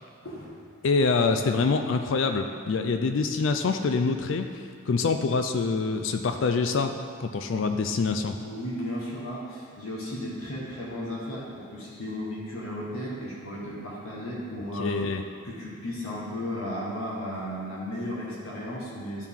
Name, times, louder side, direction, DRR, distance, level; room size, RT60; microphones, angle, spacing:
voice 1, 0.8-6.9 7.2-8.4 14.8-15.2, left 4 dB, 65° left, 7 dB, 0.4 m, -25 dB
voice 2, 8.4-15.0 15.4-19.3, equal, 80° left, -5 dB, 1.3 m, -35 dB
12.0 x 4.5 x 3.6 m, 2.2 s
head